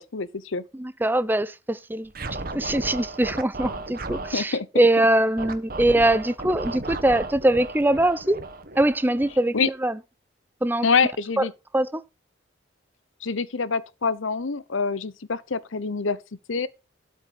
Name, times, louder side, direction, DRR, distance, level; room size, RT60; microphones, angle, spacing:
voice 1, 0.0-0.6 4.3-4.7 9.5-9.7 10.8-11.5 13.2-16.2 16.5-16.7, left 5 dB, 80° left, 0.8 m, -25 dB
voice 2, 0.7-2.1 2.5-8.4 8.8-10.0 10.6-10.9 11.4-11.5 11.7-12.0, right 1 dB, 10° right, 0.5 m, -22 dB
Scratching (performance technique), 2.1-4.4 5.4-9.7, right 2 dB, 45° right, 1.3 m, -35 dB
12.5 x 5.6 x 5.3 m
head